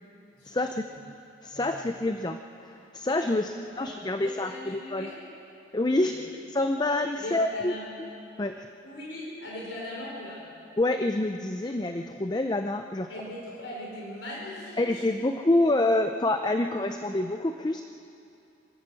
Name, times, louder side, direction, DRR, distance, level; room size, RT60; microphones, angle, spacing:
voice 1, 0.4-0.8 1.4-5.1 5.7-6.2 6.5-7.7 8.4-8.7 10.8-13.1 14.8-17.8, left 2 dB, 20° left, 6 dB, 0.6 m, -27 dB
voice 2, 1.5-1.9 3.3-5.1 5.9-6.3 7.2-7.8 8.8-10.4 13.1-15.0, left 1 dB, 80° left, -4 dB, 4.9 m, -40 dB
26.0 x 16.0 x 6.4 m, 2.6 s
head